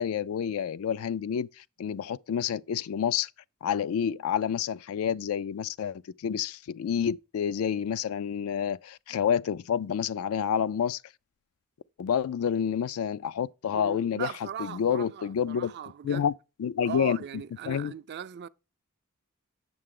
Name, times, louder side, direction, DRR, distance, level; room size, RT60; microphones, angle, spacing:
voice 1, 0.0-3.3 3.6-11.0 12.0-15.7 16.0-16.3 16.6-17.2 17.6-17.9, left 8 dB, 75° left, 0.3 m, -29 dB
voice 2, 13.7-16.3 16.8-18.5, right 8 dB, 50° right, 0.4 m, -39 dB
7.7 x 6.6 x 3.7 m
head